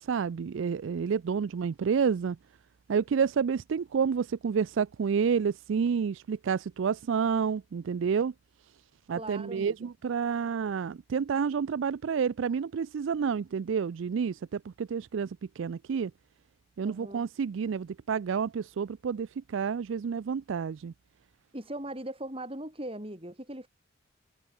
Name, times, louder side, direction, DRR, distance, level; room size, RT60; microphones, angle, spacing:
voice 1, 0.0-2.4 2.9-8.3 9.1-16.1 16.8-20.9, right 6 dB, 65° right, 0.4 m, -29 dB
voice 2, 9.2-9.9 16.8-17.3 21.5-23.7, right 1 dB, 25° right, 5.4 m, -39 dB
head